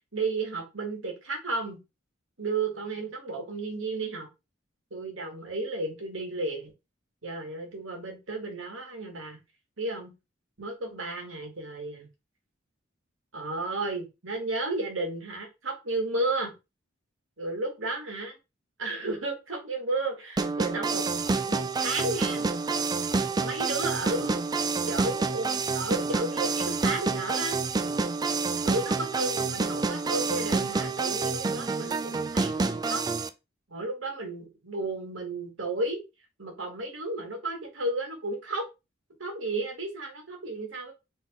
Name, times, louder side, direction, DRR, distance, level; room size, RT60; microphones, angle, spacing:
voice 1, 0.1-1.8 2.4-4.3 4.9-6.7 7.2-9.4 9.8-10.1 10.6-12.1 13.3-16.5 17.4-18.3 18.8-21.0 21.5-22.5 23.4-24.4 24.9-27.6 28.6-33.0 33.7-36.0 36.4-38.7 39.2-40.9, right 2 dB, 85° right, 2 dB, 1.9 m, -33 dB
sound 1, 20.4-33.3, right 4 dB, 20° right, 0.4 m, -28 dB
4.1 x 3.6 x 3.6 m, 0.25 s
head